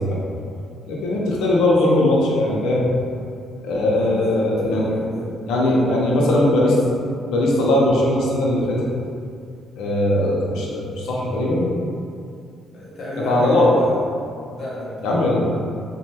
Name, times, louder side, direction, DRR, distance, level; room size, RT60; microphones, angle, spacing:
voice 1, 0.9-2.9 3.6-4.9 5.5-6.8 7.3-8.8 9.8-11.7 13.3-13.7 15.0-15.5, left 1 dB, 85° left, -4 dB, 0.5 m, -19 dB
voice 2, 3.9-5.3 5.8-6.4 12.7-13.9 14.5-15.1, left 1 dB, 65° left, -6 dB, 0.9 m, -32 dB
2.9 x 2.2 x 3.2 m, 2.4 s
cardioid pair, 90°, 0 cm